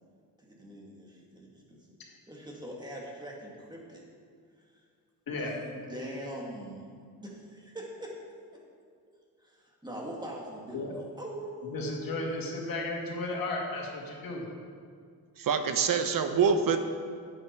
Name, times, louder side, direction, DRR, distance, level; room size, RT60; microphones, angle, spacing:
voice 1, 0.4-1.9 2.3-4.0 5.3-6.9 7.2-8.1 9.4-12.3, right 1 dB, 10° right, -3 dB, 2.3 m, -42 dB
voice 2, 5.3-5.6 10.7-10.9 11.7-14.4, left 2 dB, 70° left, -1 dB, 2.2 m, -34 dB
voice 3, 15.4-16.8, right 6 dB, 65° right, 8 dB, 0.9 m, -25 dB
11.0 x 8.8 x 4.7 m, 2.1 s
cardioid pair, 115°, 37 cm